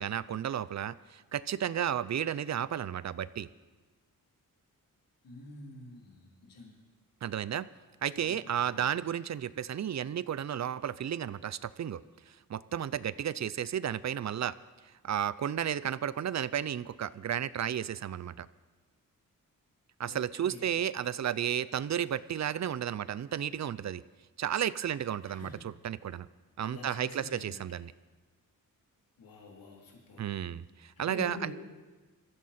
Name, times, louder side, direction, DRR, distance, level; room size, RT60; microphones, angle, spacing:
voice 1, 0.0-3.5 7.2-7.7 8.0-12.0 12.5-14.5 15.0-18.5 20.0-24.0 24.4-26.3 26.6-27.9 30.2-31.5, right 9 dB, 55° right, 17 dB, 0.5 m, -33 dB
voice 2, 5.2-6.8 8.1-8.9 20.1-20.7 25.2-25.6 26.7-27.6 29.2-30.3 31.0-31.5, left 3 dB, 80° left, -2 dB, 3.3 m, -47 dB
23.0 x 14.5 x 4.3 m, 1.3 s
wide cardioid pair, 130°, 34 cm